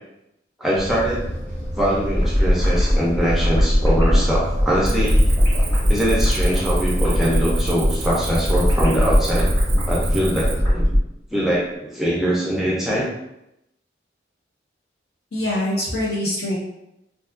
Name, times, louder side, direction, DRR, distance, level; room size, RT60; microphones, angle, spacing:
voice 1, 0.6-1.3 1.7-5.2 5.9-9.5 9.9-10.9 11.3-13.1, equal, ahead, -6 dB, 0.4 m, -22 dB
sound 1, 0.8-10.7, equal, 80° left, 0.7 m, -29 dB
sound 2, 2.0-11.0, equal, 20° left, 1.2 m, -20 dB
Cricket, 4.9-10.5, right 6 dB, 75° right, 0.4 m, -35 dB
voice 2, 15.3-16.5, left 1 dB, 60° left, -5 dB, 0.9 m, -24 dB
2.7 x 2.3 x 2.4 m, 0.86 s
head